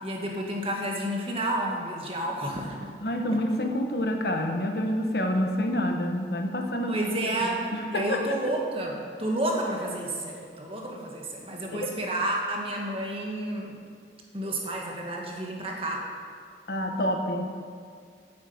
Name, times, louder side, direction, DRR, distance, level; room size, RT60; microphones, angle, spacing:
voice 1, 0.0-2.9 6.9-13.8 14.3-16.1, right 1 dB, 30° right, 0 dB, 1.7 m, -30 dB
voice 2, 3.0-7.0 7.4-8.4 11.7-11.9 16.7-17.5, equal, 60° left, 3 dB, 1.2 m, -28 dB
9.5 x 8.7 x 7.9 m, 2.2 s
head